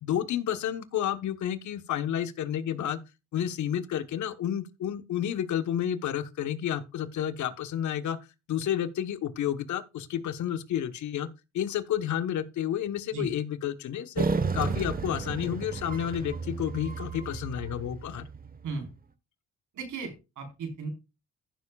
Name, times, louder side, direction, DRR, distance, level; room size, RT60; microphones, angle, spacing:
voice 1, 0.0-3.0 3.3-8.2 8.5-11.3 11.5-14.3 14.5-18.3, left 10 dB, 70° left, 1.2 m, -30 dB
sound 1, 14.2-18.7, right 4 dB, 30° right, 1.2 m, -32 dB
voice 2, 19.7-20.9, right 4 dB, 75° right, 4.5 m, -36 dB
15.0 x 7.2 x 2.4 m
cardioid pair, 90°, 30 cm